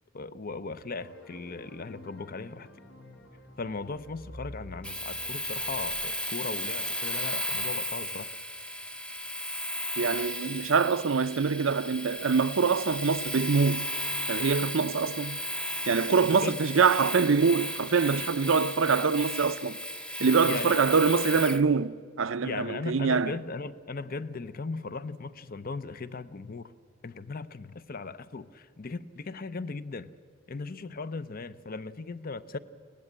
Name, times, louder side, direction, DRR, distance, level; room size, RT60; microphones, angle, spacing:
voice 1, 0.1-2.7 3.6-8.3 16.2-16.6 20.4-20.8 22.4-26.7 27.0-30.1 30.5-32.6, left 4 dB, 45° left, 0.7 m, -37 dB
sound 1, 1.0-6.0, equal, 75° left, 2.2 m, -49 dB
Domestic sounds home sounds, 4.8-21.6, left 1 dB, 5° left, 0.7 m, -34 dB
voice 2, 10.0-13.9 14.3-15.4 15.9-19.8 20.2-23.3, right 5 dB, 65° right, 0.6 m, -25 dB
24.0 x 17.5 x 8.8 m
head